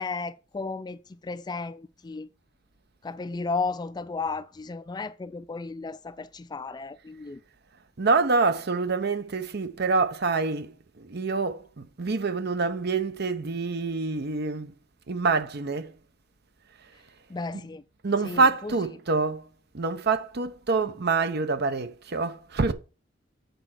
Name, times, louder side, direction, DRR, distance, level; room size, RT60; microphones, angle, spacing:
voice 1, 0.0-2.3 3.0-7.4 17.3-17.8 18.2-18.7, left 4 dB, 20° left, 0.4 m, -34 dB
voice 2, 8.0-10.7 11.0-14.7 15.1-15.9 18.0-19.5 19.7-22.7, right 4 dB, 60° right, 0.8 m, -26 dB
8.0 x 4.4 x 6.2 m
head